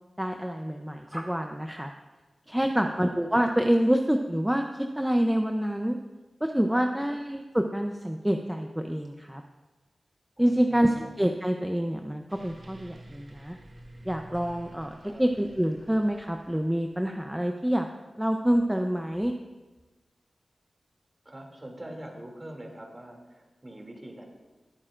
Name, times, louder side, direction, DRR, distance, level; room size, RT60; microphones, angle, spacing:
voice 1, 0.2-1.9 2.5-6.0 6.4-9.4 10.4-13.6 14.1-17.9 18.2-19.3, equal, 5° right, 4 dB, 0.6 m, -27 dB
voice 2, 2.6-2.9 6.6-6.8 10.4-11.1 15.0-15.2 21.2-24.2, right 1 dB, 30° right, 0 dB, 2.7 m, -44 dB
sound 1, 12.3-17.2, right 1 dB, 55° right, 1.4 m, -50 dB
20.0 x 8.9 x 2.5 m, 1.2 s
cardioid pair, 60°, 0 cm